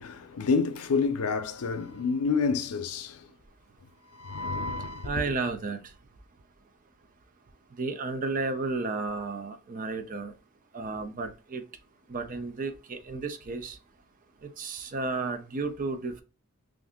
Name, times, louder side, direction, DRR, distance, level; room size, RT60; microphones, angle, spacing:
voice 1, 0.0-3.3 4.1-5.1, left 4 dB, 85° left, 0.5 m, -28 dB
voice 2, 5.0-5.9 7.8-10.3 10.7-11.6 12.1-13.8 14.4-16.2, right 3 dB, 40° right, 0.5 m, -33 dB
2.6 x 2.5 x 3.5 m
head